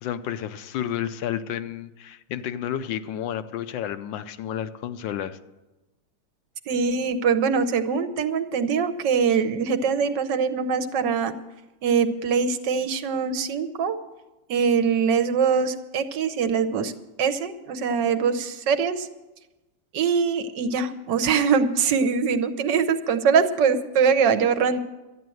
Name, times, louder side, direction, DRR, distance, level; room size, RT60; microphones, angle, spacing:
voice 1, 0.0-5.4, left 10 dB, 80° left, 11 dB, 1.4 m, -31 dB
voice 2, 6.7-11.3 11.8-14.0 14.5-16.9 17.2-19.1 19.9-24.8, right 6 dB, 70° right, 10 dB, 1.4 m, -23 dB
12.5 x 10.0 x 7.8 m, 1.1 s
omnidirectional pair, 2.0 m